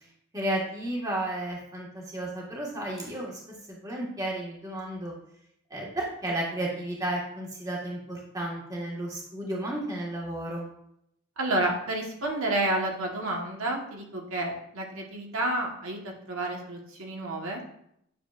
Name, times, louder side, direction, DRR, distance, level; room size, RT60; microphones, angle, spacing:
voice 1, 0.3-3.4 3.7-5.1 5.7-10.7, right 1 dB, 15° right, -3 dB, 1.6 m, -33 dB
voice 2, 11.4-17.6, right 1 dB, 75° right, 0 dB, 1.3 m, -30 dB
10.0 x 6.6 x 2.5 m, 0.74 s
head